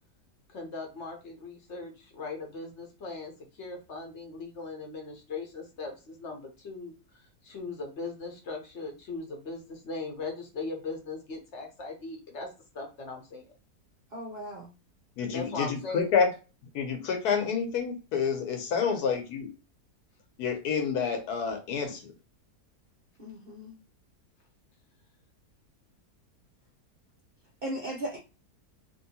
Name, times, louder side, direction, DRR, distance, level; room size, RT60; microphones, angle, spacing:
voice 1, 0.5-12.5 12.7-13.5 15.3-16.0, left 3 dB, 55° left, 2 dB, 1.0 m, -39 dB
voice 2, 14.1-14.7 23.2-23.8 27.6-28.2, equal, 55° right, -1 dB, 0.6 m, -37 dB
voice 3, 15.2-16.3 16.7-19.5 20.4-22.1, left 6 dB, 75° left, 4 dB, 1.3 m, -28 dB
3.0 x 2.7 x 2.8 m, 0.31 s
omnidirectional pair, 1.7 m